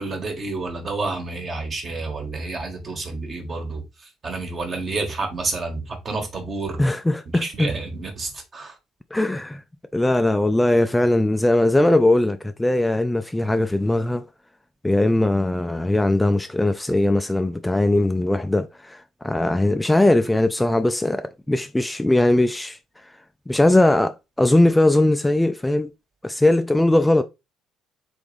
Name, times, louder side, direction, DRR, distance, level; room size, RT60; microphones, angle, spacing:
voice 1, 0.0-3.8 4.2-6.8 7.4-8.7, right 3 dB, 40° right, 1.5 m, -29 dB
voice 2, 6.8-7.7 9.1-9.6 9.9-14.2 14.8-22.8 23.5-25.9 26.2-27.2, left 1 dB, 10° left, 0.4 m, -20 dB
3.9 x 3.5 x 3.2 m
figure-of-eight pair, 50°, 0 cm